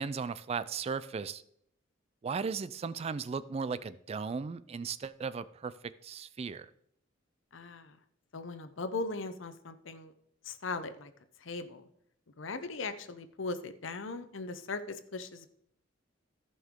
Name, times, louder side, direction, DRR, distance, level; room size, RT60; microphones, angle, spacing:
voice 1, 0.0-1.4 2.2-5.7 6.0-6.7, right 5 dB, 30° right, 15 dB, 0.3 m, -36 dB
voice 2, 7.5-8.0 8.3-10.1 10.5-11.1 11.4-11.8 12.4-15.5, left 3 dB, 65° left, 11 dB, 0.7 m, -39 dB
14.5 x 5.5 x 3.7 m, 0.69 s
head